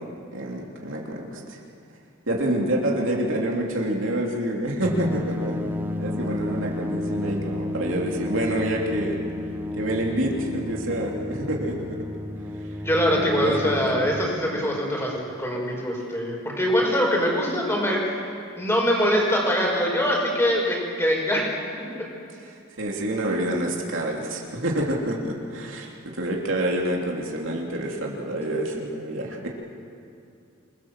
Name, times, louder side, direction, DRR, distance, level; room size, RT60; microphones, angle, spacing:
voice 1, 0.0-1.6 2.3-5.6 6.0-9.2 9.8-12.0 12.6-12.7 13.1-14.1 14.4-14.7 22.4-25.9 26.1-29.5, right 1 dB, 65° right, -1 dB, 3.3 m, -27 dB
sound 1, 4.8-14.3, left 1 dB, 10° right, 1.0 m, -31 dB
voice 2, 12.8-18.2 18.6-21.5, equal, 10° left, -2 dB, 6.1 m, -23 dB
28.0 x 22.0 x 7.5 m, 2.5 s
head